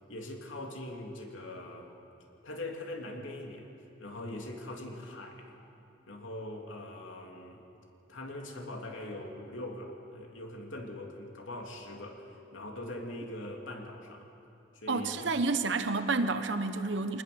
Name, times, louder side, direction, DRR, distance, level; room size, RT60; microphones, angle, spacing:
voice 1, 0.1-2.0 2.4-3.7 4.0-5.6 6.1-7.6 8.1-14.3 14.7-15.3, left 1 dB, 85° left, 1 dB, 3.1 m, -42 dB
voice 2, 14.9-17.2, right 3 dB, 65° right, 9 dB, 1.0 m, -30 dB
25.0 x 20.0 x 7.1 m, 2.9 s
head